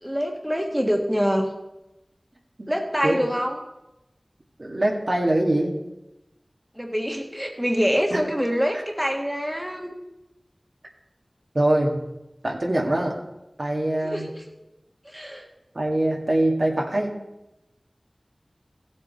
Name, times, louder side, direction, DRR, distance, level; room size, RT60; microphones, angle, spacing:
voice 1, 0.0-1.5 2.7-3.6 6.7-9.9 14.0-14.4 15.0-15.4, equal, 5° right, 2 dB, 1.5 m, -25 dB
voice 2, 4.6-5.7 8.1-8.2 11.5-12.0 12.4-13.2 13.6-14.3 15.7-17.1, right 1 dB, 60° right, -1 dB, 2.0 m, -23 dB
15.5 x 7.5 x 4.3 m, 0.96 s
wide cardioid pair, 40°, 0 cm